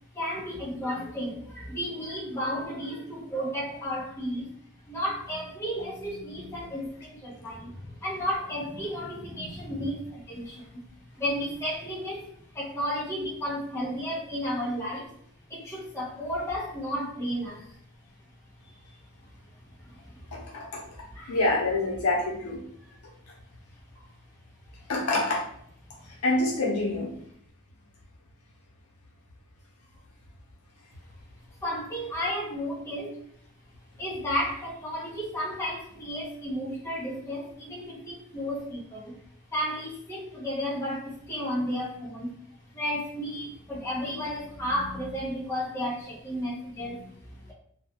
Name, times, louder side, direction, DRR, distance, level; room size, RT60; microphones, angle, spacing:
voice 1, 0.1-4.5 4.9-10.8 11.2-15.1 15.5-17.8 19.8-20.5 21.1-21.4 22.8-23.0 24.0-24.1 31.6-33.2 34.0-39.2 39.5-42.4 42.7-47.5, equal, 15° left, -6 dB, 0.6 m, -33 dB
voice 2, 20.3-20.8 21.3-22.6 24.9-25.4 26.2-27.1, left 2 dB, 80° left, -2 dB, 0.7 m, -26 dB
2.2 x 2.2 x 2.8 m, 0.65 s
head